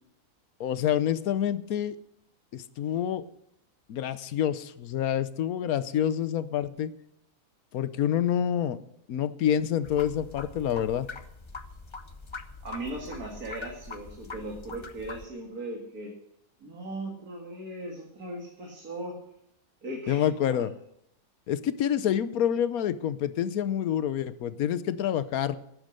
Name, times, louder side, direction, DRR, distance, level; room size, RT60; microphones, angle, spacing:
voice 1, 0.6-2.0 2.5-3.3 3.9-6.9 7.7-8.8 9.1-11.1 20.1-20.7 21.5-25.6, left 10 dB, 80° left, 14 dB, 1.3 m, -27 dB
sound 1, 9.8-15.2, left 4 dB, 30° left, 0.6 m, -43 dB
voice 2, 12.6-16.2 16.6-19.2 19.8-20.3, right 1 dB, 80° right, 0 dB, 2.6 m, -38 dB
12.0 x 9.7 x 6.5 m, 0.77 s
omnidirectional pair, 1.5 m